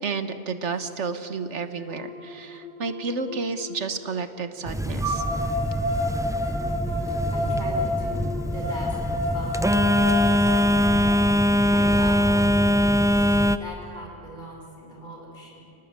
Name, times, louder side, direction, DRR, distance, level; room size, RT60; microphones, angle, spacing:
voice 1, 0.0-5.2, right 4 dB, 85° right, 9 dB, 1.7 m, -31 dB
sound 1, 1.2-1.3 1.9-3.8 5.0-11.0, left 2 dB, 70° left, 5.2 m, -30 dB
Telephone, 4.7-13.6, equal, 5° right, 0.4 m, -22 dB
voice 2, 7.3-11.1 11.7-13.1 13.5-15.6, equal, 45° left, -2 dB, 5.7 m, -40 dB
29.5 x 18.5 x 9.0 m, 3.0 s
omnidirectional pair, 1.2 m